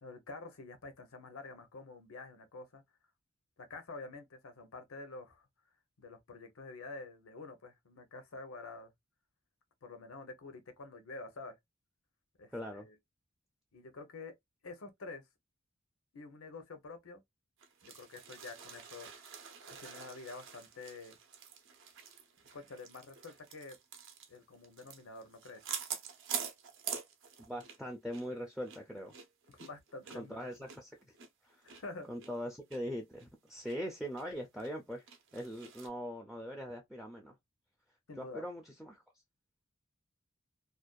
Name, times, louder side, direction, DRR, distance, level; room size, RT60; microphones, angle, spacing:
voice 1, 0.0-2.8 3.6-5.5 6.0-8.9 9.8-11.6 12.4-13.0 13.7-14.3 14.6-15.3 16.1-17.2 17.8-19.3 19.7-21.2 22.5-23.8 24.3-25.6 29.5-30.5 31.6-32.1 38.1-38.4, left 3 dB, 85° left, 0.7 m, -48 dB
voice 2, 12.5-12.9 27.5-29.1 30.1-30.9 31.4-31.8 32.1-35.0 35.3-37.3 38.2-39.0, equal, ahead, 0.3 m, -41 dB
sound 1, 17.6-27.9 28.1-28.3 28.6-31.8 32.2-32.3 32.7-32.8 33.2-33.8 34.2-34.3 34.6-35.9, right 8 dB, 65° right, 0.6 m, -46 dB
2.5 x 2.2 x 2.2 m
head